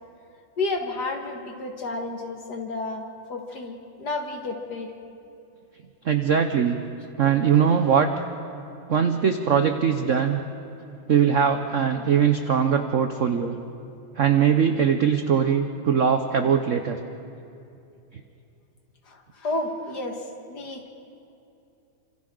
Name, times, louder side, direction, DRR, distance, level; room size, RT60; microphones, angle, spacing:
voice 1, 0.6-4.9 19.1-20.9, left 2 dB, 50° left, 3 dB, 2.2 m, -31 dB
voice 2, 6.0-6.8 7.2-8.1 8.9-10.4 11.1-13.6 14.2-17.0, right 7 dB, 65° right, 6 dB, 0.7 m, -21 dB
28.5 x 26.5 x 3.9 m, 2.7 s
omnidirectional pair, 2.4 m